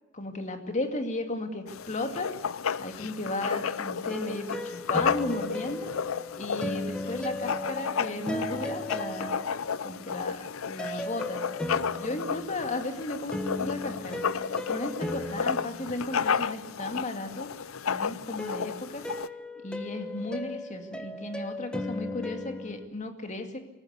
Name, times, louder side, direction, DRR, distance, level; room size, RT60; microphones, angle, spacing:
voice 1, 0.1-2.3 2.8-5.9 6.4-9.4 9.8-11.4 11.9-14.2 14.7-17.5 17.8-19.1 19.6-23.6, left 2 dB, 35° left, 5 dB, 2.4 m, -35 dB
Writing, 1.7-19.3, left 6 dB, 85° left, 0.6 m, -33 dB
sound 1, 3.4-10.0 10.8-16.7 18.4-22.9, left 1 dB, 5° left, 1.4 m, -37 dB
25.5 x 14.0 x 8.1 m, 1.0 s
head